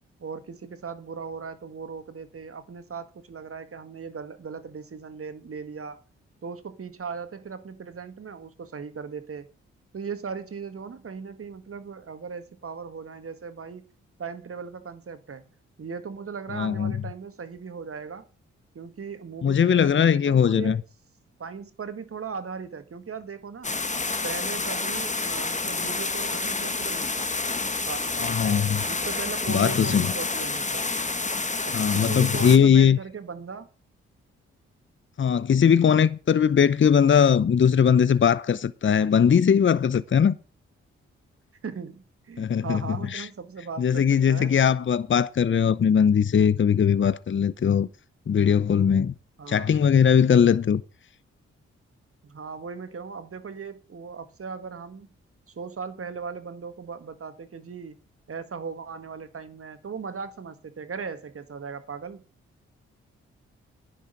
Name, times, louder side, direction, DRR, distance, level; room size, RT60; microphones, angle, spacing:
voice 1, 0.2-6.0 6.4-9.5 9.9-13.8 14.2-15.4 15.8-18.3 18.8-20.8 21.4-23.7 24.2-27.3 27.8-30.9 31.6-33.7 41.6-44.5 49.4-49.7 52.2-55.1 55.5-58.0 58.3-62.2, right 5 dB, 50° right, 1.7 m, -38 dB
voice 2, 16.5-17.0 19.4-20.8 28.2-28.8 29.5-30.1 31.7-33.0 35.2-40.3 42.4-42.8 43.1-43.3 43.8-47.9 48.3-49.1 49.5-50.8, left 7 dB, 40° left, 0.8 m, -20 dB
sound 1, 23.6-32.6, left 3 dB, 25° left, 1.4 m, -29 dB
10.0 x 6.4 x 7.7 m
hypercardioid pair, 40°, 30 cm